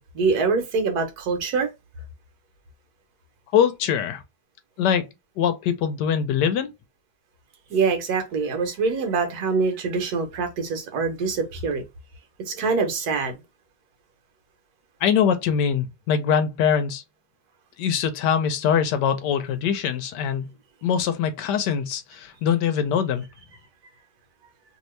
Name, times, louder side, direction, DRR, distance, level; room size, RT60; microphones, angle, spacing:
voice 1, 0.0-1.7 7.7-11.8 12.5-13.3, right 4 dB, 65° right, 1.3 m, -24 dB
voice 2, 3.5-4.2 4.8-5.1 5.4-6.7 15.0-17.0 17.8-20.5 20.8-23.2, left 8 dB, 75° left, 1.2 m, -23 dB
2.9 x 2.7 x 3.1 m
omnidirectional pair, 1.9 m